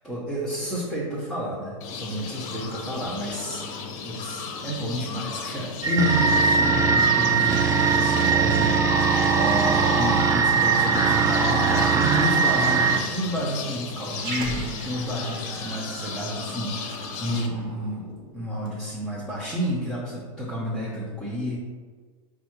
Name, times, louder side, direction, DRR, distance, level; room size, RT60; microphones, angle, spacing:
voice 1, 0.0-3.7 4.0-21.6, equal, ahead, -8 dB, 0.9 m, -30 dB
sound 1, 1.8-17.5, left 5 dB, 45° left, 0.6 m, -35 dB
sound 2, 5.8-13.0, right 5 dB, 15° right, 0.4 m, -20 dB
Growling, 14.1-18.8, right 2 dB, 50° right, 0.7 m, -39 dB
5.3 x 2.3 x 3.0 m, 1.5 s
hypercardioid pair, 95°, 18 cm